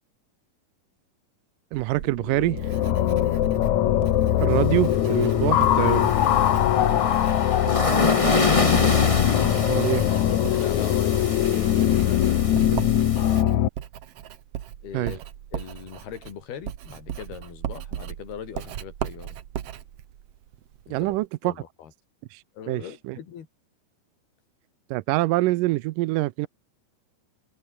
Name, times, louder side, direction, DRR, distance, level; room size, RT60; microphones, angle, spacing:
Writing, 1.7-21.3, right 10 dB, 60° right, 1.7 m, -39 dB
voice 1, 1.7-2.7 4.4-6.1 9.7-10.0 12.7-12.8 14.9-15.1 20.9-21.5 22.3-23.2 24.9-26.5, right 19 dB, 80° right, 2.0 m, -25 dB
sound 1, 2.1-13.7, left 12 dB, 60° left, 2.3 m, -21 dB
sound 2, 4.5-13.4, left 2 dB, 35° left, 0.5 m, -28 dB
voice 2, 6.8-8.6 10.4-11.4 11.9-12.8 14.8-15.2 15.5-19.4 20.9-21.1 21.4-21.9 22.5-23.5, left 8 dB, 90° left, 4.8 m, -40 dB
omnidirectional pair, 4.4 m